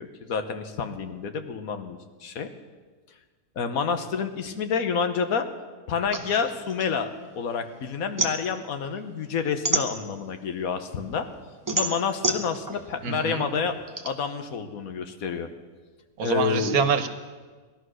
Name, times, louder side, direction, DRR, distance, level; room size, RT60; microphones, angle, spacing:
voice 1, 0.0-2.5 3.6-5.5 5.9-7.1 7.4-11.3 11.7-13.7 14.0-15.5 16.2-16.8, left 6 dB, 75° left, 8 dB, 1.5 m, -28 dB
sound 1, 6.1-7.6 7.9-10.5 10.9-14.1, right 2 dB, 20° right, 0.7 m, -29 dB
voice 2, 13.0-13.4 16.2-17.1, right 6 dB, 80° right, 9 dB, 1.5 m, -25 dB
17.0 x 12.0 x 6.3 m, 1.4 s
omnidirectional pair, 1.5 m